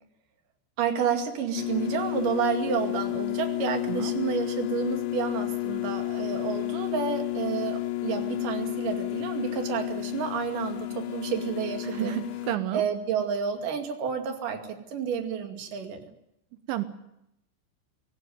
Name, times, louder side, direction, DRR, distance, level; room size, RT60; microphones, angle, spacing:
voice 1, 0.8-12.2 12.7-16.1, right 7 dB, 50° right, 4 dB, 3.6 m, -30 dB
sound 1, 1.6-12.6, left 20 dB, 75° left, 3.0 m, -31 dB
voice 2, 11.8-12.8 16.7-16.8, right 12 dB, 85° right, 10 dB, 3.5 m, -30 dB
22.0 x 18.0 x 9.3 m, 0.82 s
omnidirectional pair, 5.4 m